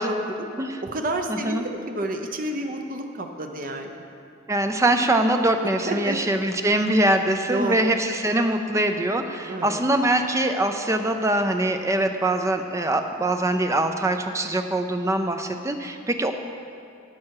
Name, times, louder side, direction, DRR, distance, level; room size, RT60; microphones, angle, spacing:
voice 1, 0.0-0.5 0.8-4.0 5.9-6.2 7.4-8.0 9.4-9.8, right 1 dB, 45° right, 4 dB, 0.8 m, -30 dB
voice 2, 1.3-1.7 4.5-16.3, right 1 dB, 15° right, 6 dB, 0.5 m, -23 dB
12.0 x 8.6 x 4.8 m, 2.4 s
head